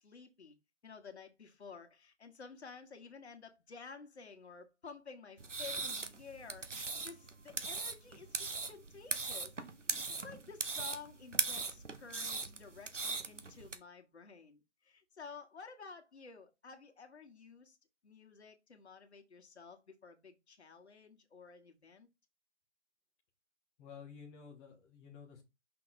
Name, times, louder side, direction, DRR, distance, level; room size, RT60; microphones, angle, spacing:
voice 1, 0.0-0.6 0.8-9.5 9.9-17.8 18.0-22.1, left 5 dB, 65° left, 1.6 m, -52 dB
sound 1, 5.4-13.8, right 3 dB, 90° right, 1.0 m, -39 dB
voice 2, 23.8-25.4, left 6 dB, 10° left, 0.8 m, -52 dB
5.9 x 4.2 x 4.2 m
figure-of-eight pair, 135°, 35 cm